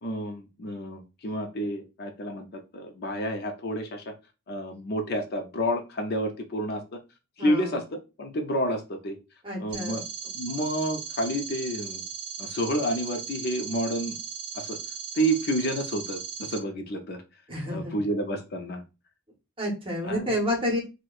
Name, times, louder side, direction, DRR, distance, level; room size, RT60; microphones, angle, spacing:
voice 1, 0.0-4.1 4.5-7.0 7.4-7.8 8.2-9.2 9.6-10.0 10.3-12.0 12.4-14.2 14.5-14.8 15.1-17.2 17.7-18.8 20.0-20.4, equal, 50° left, 5 dB, 0.5 m, -29 dB
voice 2, 7.4-7.8 9.4-10.0 17.5-18.0 19.6-20.8, equal, 25° right, 0 dB, 0.9 m, -29 dB
sound 1, 9.7-16.6, right 6 dB, 55° right, 0.5 m, -37 dB
4.3 x 2.1 x 2.3 m, 0.28 s
head